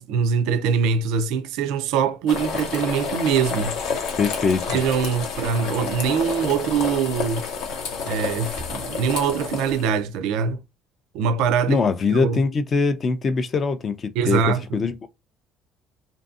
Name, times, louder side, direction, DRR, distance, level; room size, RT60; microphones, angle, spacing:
voice 1, 0.0-3.8 4.7-7.5 8.1-10.6 11.1-11.8 12.1-12.4 14.2-14.8, right 6 dB, 75° right, 0.3 m, -23 dB
sound 1, 2.3-9.9, left 5 dB, 70° left, 0.8 m, -29 dB
voice 2, 4.2-4.8 11.7-14.4 14.7-15.1, left 4 dB, 30° left, 0.4 m, -22 dB
2.6 x 2.5 x 2.3 m
cardioid pair, 160°, 0 cm